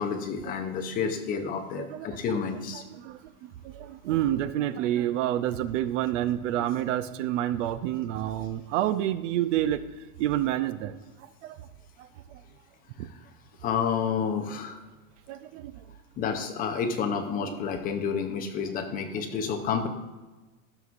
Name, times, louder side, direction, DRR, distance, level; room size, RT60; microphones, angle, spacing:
voice 1, 0.0-2.8 13.6-14.8 16.2-19.9, left 6 dB, 20° left, 5 dB, 0.6 m, -30 dB
voice 2, 1.8-2.1 2.7-9.8 10.2-10.9 11.4-11.6 13.0-13.1 15.3-15.7 17.4-17.6 18.6-18.7 19.3-19.5, right 12 dB, 60° right, 14 dB, 0.6 m, -29 dB
13.0 x 6.2 x 2.5 m, 1.2 s
supercardioid pair, 155°, 43 cm